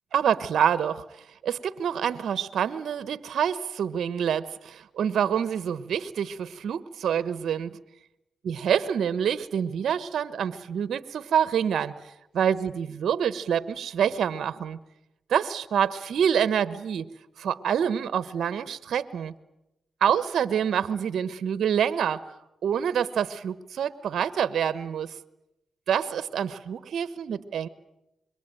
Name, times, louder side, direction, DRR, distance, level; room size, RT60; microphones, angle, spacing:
voice 1, 0.1-7.8 8.4-14.8 15.3-17.1 17.4-19.3 20.0-22.2 22.6-25.1 25.9-27.7, right 8 dB, 80° right, 14 dB, 1.2 m, -27 dB
26.0 x 23.0 x 9.1 m, 0.90 s
cardioid pair, 55°, 0 cm